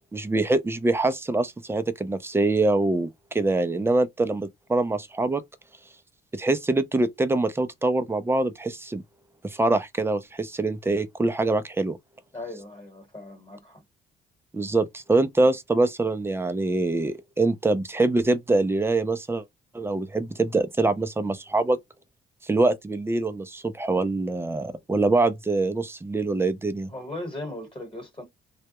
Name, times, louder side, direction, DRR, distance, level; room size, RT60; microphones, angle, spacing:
voice 1, 0.1-5.4 6.3-9.0 9.4-12.0 14.5-19.4 19.7-21.8 22.4-26.9, right 2 dB, 10° right, 0.4 m, -24 dB
voice 2, 12.3-13.8 26.9-28.2, left 1 dB, 25° left, 1.2 m, -38 dB
2.2 x 2.0 x 2.8 m
cardioid pair, 90°, 20 cm